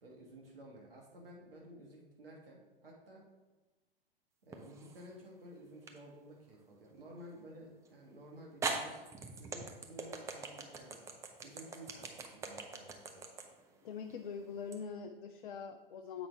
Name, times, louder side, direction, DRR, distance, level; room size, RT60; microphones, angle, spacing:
voice 1, 0.0-3.3 4.4-9.0 9.4-13.3, right 1 dB, 70° right, -1 dB, 1.5 m, -53 dB
sound 1, 4.5-5.1 5.9-6.0 7.9-8.0 8.6-14.8, right 4 dB, 10° right, 0.4 m, -41 dB
voice 2, 13.8-16.3, left 6 dB, 60° left, 7 dB, 0.5 m, -43 dB
7.8 x 5.3 x 3.4 m, 1.2 s
figure-of-eight pair, 100°, 29 cm